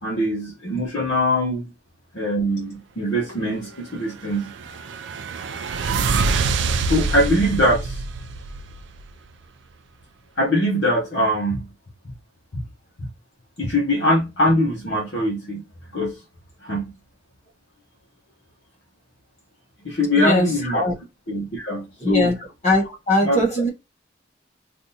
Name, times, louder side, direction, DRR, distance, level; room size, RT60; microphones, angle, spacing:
voice 1, 0.0-1.7 2.1-4.5 6.8-8.0 10.4-11.7 12.5-12.6 13.0-13.1 13.6-15.6 15.9-16.2 16.6-16.9 19.8-20.9 21.3-22.4 23.2-23.7, left 1 dB, 60° left, 0.9 m, -22 dB
sound 1, 4.2-9.1, right 4 dB, 65° right, 0.4 m, -25 dB
voice 2, 20.2-20.5 20.7-20.9 22.0-22.3 22.6-23.7, left 1 dB, 35° left, 1.2 m, -20 dB
3.4 x 2.6 x 2.7 m
head